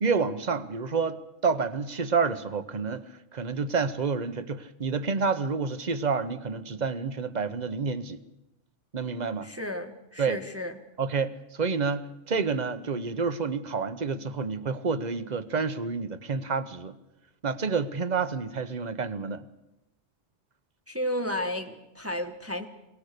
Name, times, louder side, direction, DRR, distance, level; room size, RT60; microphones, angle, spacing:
voice 1, 0.0-3.0 3.3-8.2 8.9-9.5 10.2-10.4 11.0-16.9 17.4-19.4, right 5 dB, 40° right, 12 dB, 1.0 m, -29 dB
voice 2, 9.4-10.8 20.9-22.7, left 1 dB, 10° right, 5 dB, 1.3 m, -33 dB
22.0 x 18.5 x 6.7 m, 0.94 s
omnidirectional pair, 1.2 m